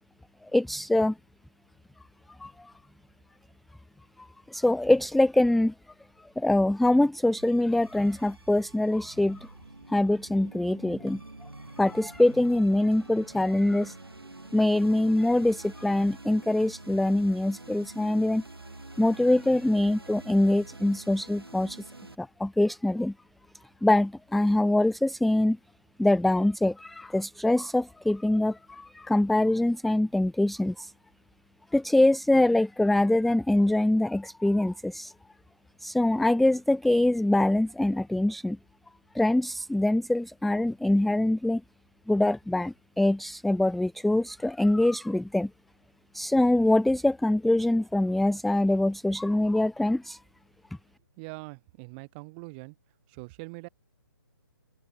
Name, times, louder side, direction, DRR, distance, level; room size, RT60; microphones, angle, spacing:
voice 1, 0.5-1.2 2.4-2.7 4.2-5.7 6.4-9.5 9.9-11.2 11.8-14.0 14.5-18.4 19.0-21.8 22.2-23.1 23.8-25.6 26.0-30.9 31.7-35.1 35.8-38.6 39.1-41.6 42.1-45.5 46.1-50.2, left 1 dB, ahead, 0.4 m, -24 dB
sound 1, 7.4-22.2, right 2 dB, 90° right, 4.4 m, -47 dB
voice 2, 51.2-52.7 53.1-53.7, right 31 dB, 25° right, 3.3 m, -42 dB
open air
figure-of-eight pair, 135°, 12 cm